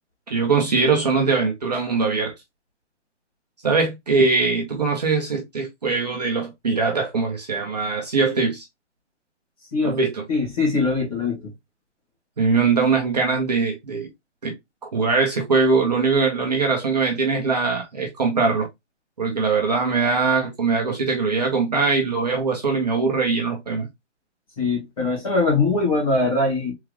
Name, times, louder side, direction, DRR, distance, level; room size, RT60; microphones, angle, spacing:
voice 1, 0.3-2.3 3.6-8.6 9.8-10.2 12.4-14.1 14.4-14.5 14.9-18.7 19.2-23.9, right 4 dB, 35° right, 0.9 m, -21 dB
voice 2, 10.3-11.5 24.6-26.7, left 3 dB, 30° left, 1.7 m, -22 dB
3.7 x 3.2 x 3.2 m
hypercardioid pair, 175°, 36 cm